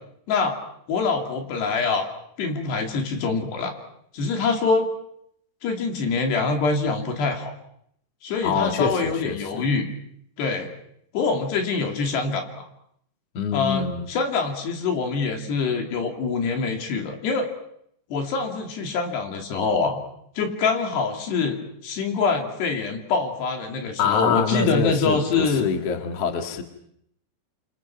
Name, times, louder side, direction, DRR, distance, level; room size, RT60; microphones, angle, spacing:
voice 1, 0.9-2.1 2.4-3.7 4.1-4.9 5.6-7.5 8.2-9.9 10.4-10.7 11.1-12.7 13.5-17.5 18.1-20.0 20.4-21.6 21.8-25.7, left 4 dB, 65° left, 4 dB, 4.8 m, -25 dB
voice 2, 8.4-9.6 13.3-14.1 24.0-26.6, left 5 dB, 50° left, 6 dB, 2.1 m, -25 dB
27.5 x 26.0 x 6.0 m, 0.72 s
omnidirectional pair, 5.4 m